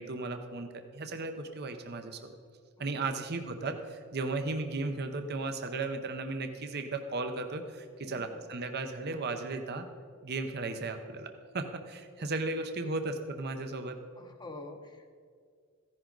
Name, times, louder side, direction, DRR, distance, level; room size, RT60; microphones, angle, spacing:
voice 1, 0.0-2.4 2.8-9.9 10.2-14.0, right 3 dB, 45° right, 7 dB, 0.8 m, -35 dB
voice 2, 2.8-3.3 8.1-8.4 12.2-12.3 14.2-15.1, left 2 dB, 20° left, 4 dB, 0.8 m, -48 dB
15.0 x 10.5 x 3.9 m, 2.2 s
head